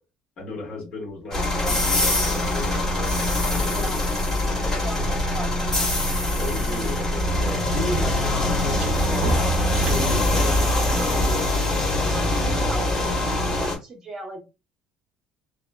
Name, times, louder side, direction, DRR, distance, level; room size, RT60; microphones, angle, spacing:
voice 1, 0.4-4.0 4.7-4.9 6.4-9.5 9.7-11.3, left 3 dB, 40° left, -3 dB, 1.6 m, -34 dB
sound 1, 1.1-1.2 2.3-6.4 6.6-10.4 12.4-12.6, equal, 55° right, 0.5 m, -37 dB
sound 2, 1.3-13.8, left 1 dB, 20° left, 1.4 m, -23 dB
voice 2, 4.4-5.8 12.1-14.4, right 2 dB, 25° right, -3 dB, 1.0 m, -38 dB
2.9 x 2.2 x 2.2 m, 0.27 s
cardioid pair, 170°, 2 cm